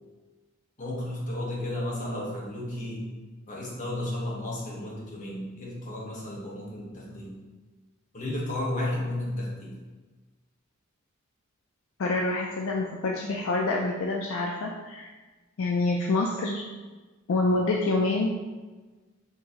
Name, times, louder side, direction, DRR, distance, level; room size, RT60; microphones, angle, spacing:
voice 1, 0.8-3.1 3.5-7.4 8.1-9.7, left 1 dB, 40° left, -4 dB, 1.2 m, -33 dB
voice 2, 12.0-15.1 15.6-16.6 17.3-18.3, left 2 dB, 65° left, 0 dB, 0.4 m, -26 dB
5.8 x 3.1 x 2.9 m, 1.3 s
head